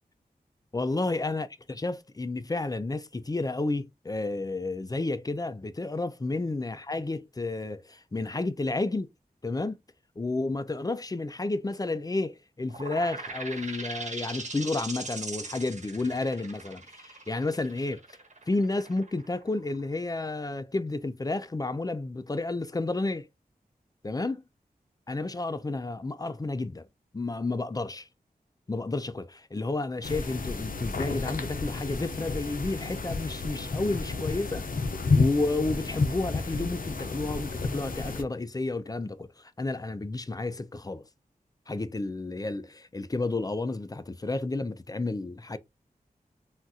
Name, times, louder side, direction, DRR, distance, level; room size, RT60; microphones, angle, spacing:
voice 1, 0.7-9.1 9.4-9.8 10.2-18.0 18.5-23.3 24.0-24.4 25.1-26.9 27.1-28.1 28.7-34.6 35.1-41.0 41.7-45.6, left 2 dB, 25° left, 0.4 m, -31 dB
sound 1, 12.7-20.0, right 3 dB, 45° right, 1.2 m, -40 dB
sound 2, 30.0-38.2, left 3 dB, 60° left, 0.7 m, -31 dB
3.5 x 2.4 x 2.7 m
cardioid pair, 40°, 16 cm